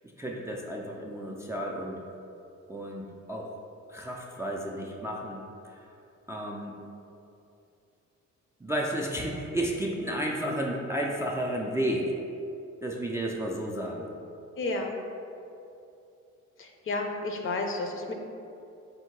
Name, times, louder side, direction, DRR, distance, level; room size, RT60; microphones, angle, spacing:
voice 1, 0.2-2.0 2.7-3.5 3.9-5.4 6.3-6.8 8.6-12.1 12.8-14.1, right 1 dB, 10° right, -2 dB, 0.3 m, -32 dB
voice 2, 14.6-14.9 16.6-18.1, left 2 dB, 45° left, 3 dB, 0.5 m, -31 dB
3.5 x 2.8 x 4.5 m, 2.7 s
cardioid pair, 90°, 30 cm